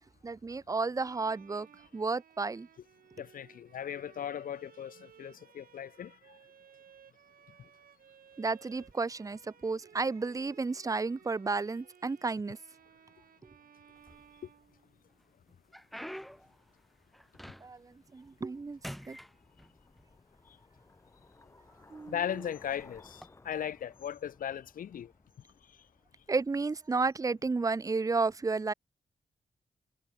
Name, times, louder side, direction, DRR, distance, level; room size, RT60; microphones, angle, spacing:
voice 1, 0.2-1.7 1.9-2.7 8.4-12.6 17.6-18.8 19.1-19.2 21.9-22.2 26.3-28.7, right 4 dB, 25° right, 1.2 m, -32 dB
Bowed string instrument, 1.0-15.2, right 8 dB, 85° right, 5.3 m, -59 dB
voice 2, 3.2-6.1 22.1-25.1, left 9 dB, 75° left, 0.9 m, -37 dB
sound 1, 14.0-14.7 15.2-17.9 18.3-18.6 18.8-20.1 20.9-21.0 21.7-21.9 23.1-23.3, equal, ahead, 1.4 m, -46 dB
Bicycle, 16.1-26.9, left 3 dB, 20° left, 5.0 m, -61 dB
wide cardioid pair, 175°, 14 cm